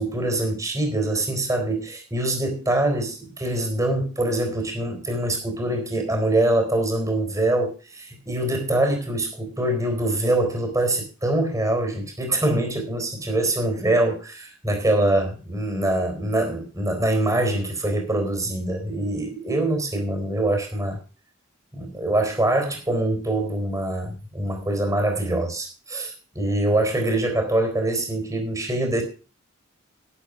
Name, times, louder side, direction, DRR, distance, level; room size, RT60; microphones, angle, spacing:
voice 1, 0.0-21.0 21.7-29.0, right 1 dB, 15° right, 5 dB, 3.9 m, -24 dB
11.5 x 10.5 x 4.9 m, 0.35 s
head